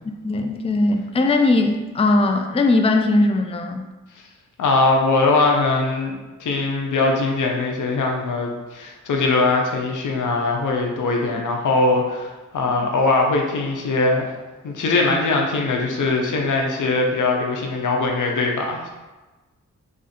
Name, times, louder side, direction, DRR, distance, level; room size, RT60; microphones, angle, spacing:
voice 1, 0.0-3.8, left 2 dB, 20° left, 5 dB, 0.4 m, -19 dB
voice 2, 4.6-6.1 6.4-14.3 14.6-18.9, left 3 dB, 85° left, 1 dB, 0.7 m, -21 dB
3.6 x 2.4 x 4.2 m, 1.2 s
cardioid pair, 60°, 30 cm